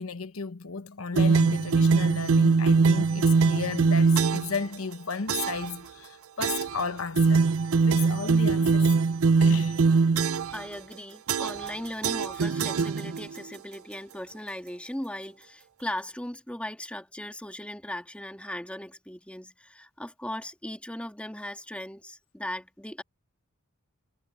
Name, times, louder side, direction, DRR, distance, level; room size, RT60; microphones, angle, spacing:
voice 1, 0.0-7.4 7.8-9.0 9.4-9.8, left 5 dB, 75° left, 1.0 m, -34 dB
sound 1, 1.2-4.6 5.3-5.7 6.4-6.8 7.2-10.6 11.3-11.7 12.0-13.4, right 4 dB, 75° right, 0.5 m, -22 dB
voice 2, 10.5-23.0, left 1 dB, 5° left, 2.0 m, -38 dB
head